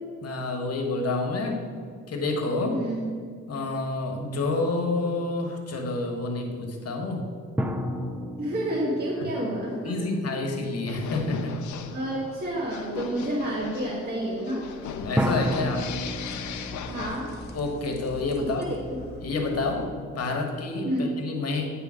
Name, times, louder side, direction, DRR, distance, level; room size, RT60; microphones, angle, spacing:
voice 1, 0.2-1.6 2.1-2.8 3.5-7.3 9.8-11.6 14.9-15.9 17.5-18.7 19.2-19.9 20.1-21.7, left 3 dB, 55° left, 3 dB, 1.3 m, -28 dB
voice 2, 2.6-3.1 8.4-9.9 11.9-14.6 16.9-17.3 18.3-18.7 19.0-19.1 20.8-21.1, right 1 dB, 30° right, -5 dB, 1.4 m, -29 dB
sound 1, 7.6-10.9 15.2-18.5, equal, 5° right, 0.5 m, -32 dB
sound 2, 10.9-17.7, left 7 dB, 75° left, 0.6 m, -38 dB
sound 3, 14.8-19.8, left 1 dB, 35° left, 1.1 m, -43 dB
9.1 x 3.4 x 6.2 m, 2.1 s
cardioid pair, 90°, 30 cm